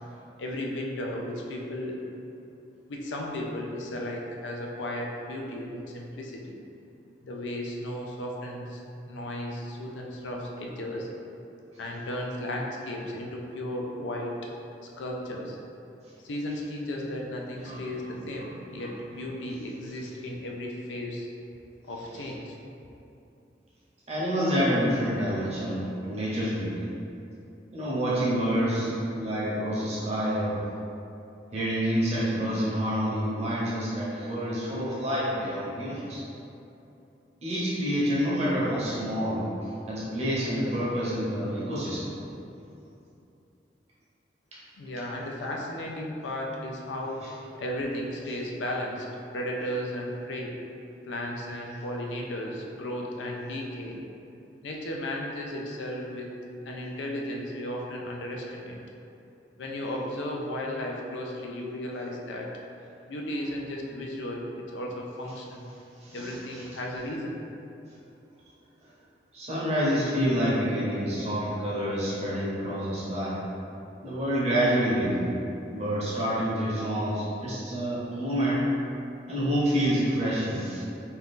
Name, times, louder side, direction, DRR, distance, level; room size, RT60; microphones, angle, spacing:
voice 1, 0.4-2.0 2.9-6.6 7.2-8.8 9.1-11.1 11.8-14.4 15.0-15.6 16.2-21.3 21.8-22.6 44.8-47.2 47.6-49.1 49.3-50.6 51.0-54.0 54.6-56.3 56.6-58.8 59.6-62.5 63.1-65.7 66.1-67.3, left 1 dB, 85° left, -1 dB, 0.4 m, -34 dB
voice 2, 24.1-26.9 27.7-30.6 31.5-36.2 37.4-39.5 39.9-42.1 47.2-47.3 66.0-66.6 69.3-73.4 74.0-75.4 75.7-78.6 79.3-80.8, equal, 35° right, -8 dB, 0.8 m, -28 dB
2.7 x 2.4 x 3.5 m, 2.8 s
head